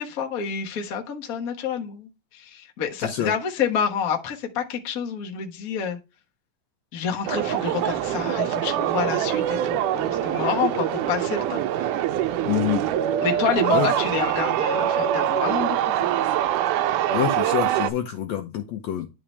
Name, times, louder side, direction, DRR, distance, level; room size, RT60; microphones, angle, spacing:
voice 1, 0.0-6.0 6.9-11.9 13.2-16.1, left 7 dB, 60° left, 1 dB, 0.9 m, -28 dB
voice 2, 3.0-3.3 12.5-12.9 13.7-13.9 17.1-19.1, left 11 dB, 75° left, 6 dB, 1.6 m, -26 dB
sound 1, 7.3-17.9, right 11 dB, 80° right, 2.0 m, -24 dB
11.5 x 3.9 x 3.3 m, 0.27 s
omnidirectional pair, 3.9 m